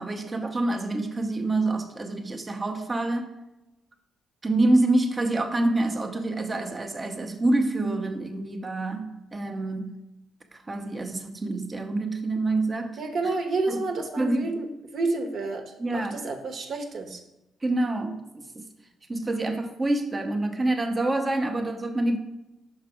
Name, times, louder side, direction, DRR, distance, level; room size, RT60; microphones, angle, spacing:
voice 1, 0.0-3.3 4.4-10.0 10.5-13.0 13.7-13.8 14.2-14.5 15.8-16.2 17.6-18.6 19.1-22.2, right 2 dB, 25° right, 4 dB, 0.8 m, -26 dB
voice 2, 13.0-14.7 14.9-15.6 15.9-17.2, right 3 dB, 60° right, 4 dB, 1.1 m, -29 dB
5.9 x 4.8 x 4.8 m, 0.95 s
cardioid pair, 90°, 0 cm